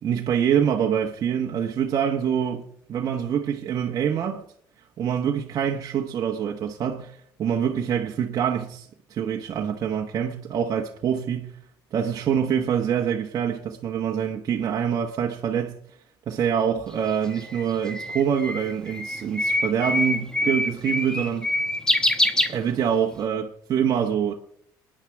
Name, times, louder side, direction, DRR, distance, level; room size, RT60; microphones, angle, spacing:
voice 1, 0.0-4.4 5.0-11.5 11.9-15.8 16.3-21.5 22.5-24.3, right 8 dB, 45° right, 1.2 m, -25 dB
Bird, 16.9-23.1, left 1 dB, 10° left, 1.1 m, -25 dB
27.5 x 10.0 x 3.5 m
cardioid pair, 130°, 8 cm